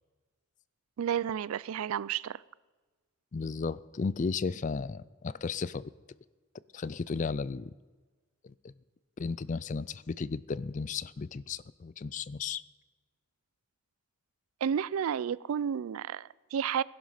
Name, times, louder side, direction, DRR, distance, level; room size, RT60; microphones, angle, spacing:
voice 1, 1.0-2.4 14.6-16.8, right 8 dB, 75° right, 0.3 m, -31 dB
voice 2, 3.3-5.9 6.7-7.7 8.4-8.7 9.2-12.6, left 4 dB, 35° left, 0.3 m, -34 dB
17.0 x 11.5 x 5.7 m
head